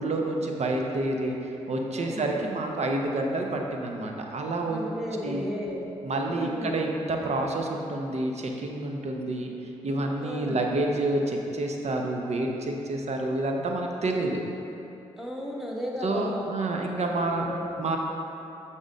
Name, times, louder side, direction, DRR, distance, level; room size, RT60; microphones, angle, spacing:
voice 1, 0.0-1.4 1.7-4.8 5.2-5.5 6.0-9.5 9.8-14.4 16.0-17.5 17.8-18.0, right 2 dB, 55° right, 1 dB, 0.8 m, -28 dB
voice 2, 1.9-2.3 4.7-5.9 6.3-6.8 10.2-10.6 15.2-16.6 17.2-17.9, equal, 5° right, -3 dB, 1.3 m, -35 dB
6.3 x 3.8 x 5.1 m, 2.9 s
supercardioid pair, 45°, 14 cm